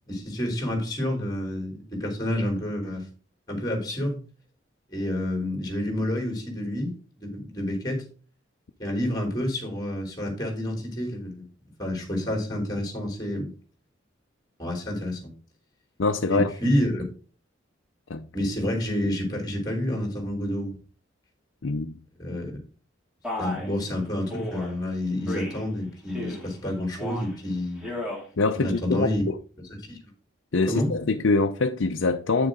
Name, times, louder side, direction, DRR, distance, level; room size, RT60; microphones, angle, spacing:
voice 1, 0.1-3.1 3.5-4.2 4.9-8.0 8.8-11.4 11.8-13.5 14.6-15.3 16.3-17.0 18.3-20.8 22.2-22.6 23.4-28.0 28.6-29.2 29.9-30.0 30.7-30.9, left 1 dB, 20° left, 3.4 m, -29 dB
voice 2, 16.0-16.5 18.1-18.3 21.6-21.9 28.4-29.4 30.5-32.5, left 3 dB, 75° left, 0.6 m, -24 dB
Male speech man speaking, 23.2-23.7 24.3-24.7 25.3-25.7 26.1-26.5 26.9-27.4 27.8-28.2, left 1 dB, 5° right, 2.7 m, -34 dB
9.0 x 6.8 x 3.8 m
head